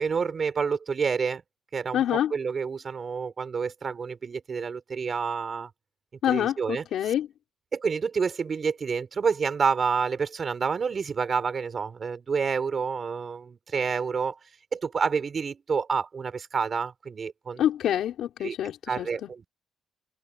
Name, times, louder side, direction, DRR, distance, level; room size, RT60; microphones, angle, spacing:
voice 1, 0.0-1.4 1.7-5.7 6.3-7.1 7.7-14.4 14.7-17.6 18.4-18.6 18.9-19.5, right 5 dB, 45° right, 4.5 m, -28 dB
voice 2, 1.9-2.3 6.2-7.3 17.6-19.3, left 11 dB, 75° left, 4.6 m, -26 dB
cardioid pair, 90°, 0 cm